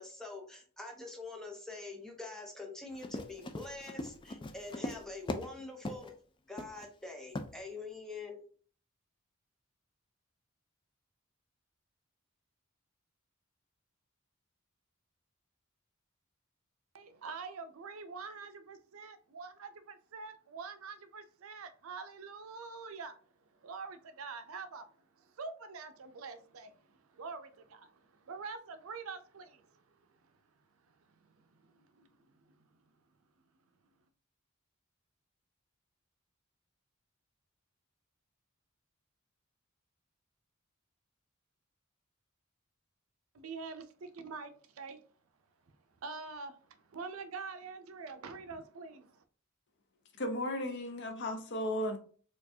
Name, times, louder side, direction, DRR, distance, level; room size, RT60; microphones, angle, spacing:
voice 1, 0.0-6.1 6.5-8.5, left 3 dB, 5° left, 0.8 m, -45 dB
Run, 2.9-5.5 5.8-6.1 6.6-6.9 7.3-7.5, left 2 dB, 25° left, 0.3 m, -39 dB
voice 2, 16.9-23.1 23.5-24.9 25.2-29.8 31.2-32.6 43.3-45.0 46.0-46.6 46.9-49.2, right 4 dB, 80° right, 0.5 m, -45 dB
voice 3, 50.2-52.0, left 1 dB, 55° left, 0.7 m, -35 dB
4.4 x 2.4 x 2.7 m
head